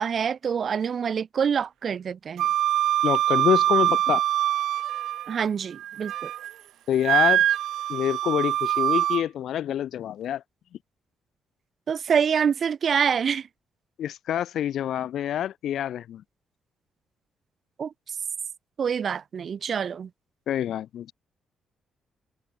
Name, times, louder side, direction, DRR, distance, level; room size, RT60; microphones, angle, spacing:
voice 1, 0.0-2.5 5.3-6.3 11.9-13.5 17.8-17.9 18.8-20.1, right 7 dB, 50° right, 1.2 m, -26 dB
Wind instrument woodwind instrument, 2.4-5.4 5.8-6.5 7.0-9.2, right 12 dB, 80° right, 0.6 m, -24 dB
voice 2, 3.0-4.2 6.9-7.4 7.9-10.4 14.0-16.2 20.5-21.1, left 11 dB, 75° left, 2.0 m, -26 dB
cardioid pair, 100°, 0 cm